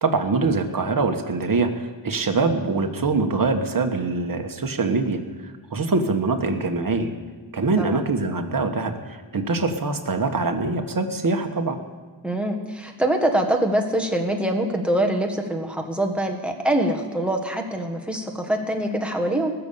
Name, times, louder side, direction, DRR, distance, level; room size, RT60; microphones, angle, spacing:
voice 1, 0.0-5.2 5.7-7.1 7.5-11.8, right 3 dB, 45° right, 5 dB, 1.3 m, -23 dB
voice 2, 12.2-19.5, right 1 dB, ahead, 2 dB, 1.6 m, -24 dB
20.0 x 7.0 x 6.8 m, 1.4 s
wide cardioid pair, 100°, 48 cm